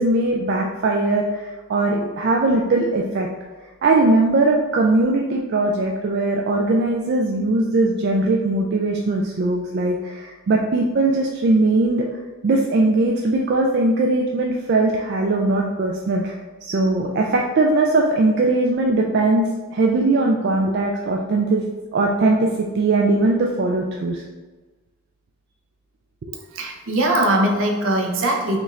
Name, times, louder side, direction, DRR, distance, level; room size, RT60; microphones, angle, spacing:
voice 1, 0.0-3.3 3.8-12.1 12.4-19.4 19.7-21.6 21.9-24.2, right 2 dB, 50° right, 0 dB, 0.3 m, -20 dB
voice 2, 26.5-28.6, right 1 dB, 70° right, 1 dB, 0.7 m, -20 dB
5.0 x 2.4 x 3.2 m, 1.3 s
head